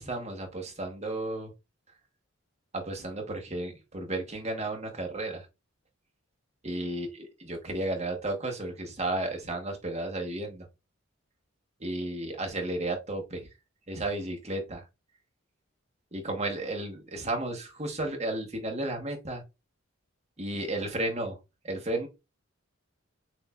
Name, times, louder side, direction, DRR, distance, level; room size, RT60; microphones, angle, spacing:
voice 1, 0.0-1.5 2.7-5.5 6.6-10.7 11.8-13.5 13.9-14.8 16.1-19.4 20.4-21.4 21.6-22.1, right 2 dB, 30° right, 1.2 m, -33 dB
6.2 x 2.6 x 2.4 m
head